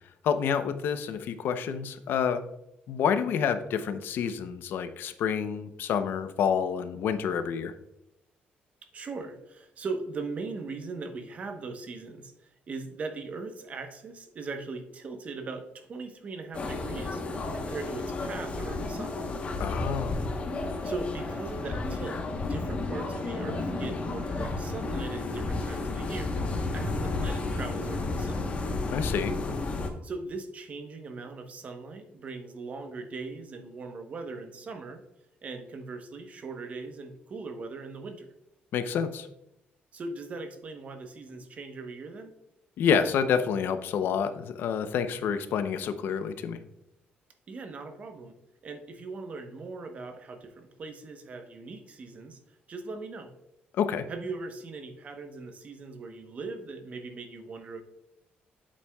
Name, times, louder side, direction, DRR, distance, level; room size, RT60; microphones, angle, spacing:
voice 1, 0.2-2.4 2.9-7.7 19.6-20.2 28.9-29.4 38.7-39.3 42.8-46.6 53.8-54.1, left 7 dB, 70° left, 10 dB, 0.6 m, -28 dB
voice 2, 8.9-19.2 20.8-22.2 22.5-28.4 30.0-35.0 35.4-38.3 39.9-42.3 47.5-48.3 48.6-53.3 54.1-57.8, right 3 dB, 40° right, 6 dB, 0.9 m, -39 dB
sound 1, 16.5-29.9, left 3 dB, 35° left, 1.0 m, -32 dB
8.5 x 7.5 x 2.3 m, 0.86 s
cardioid pair, 155°, 4 cm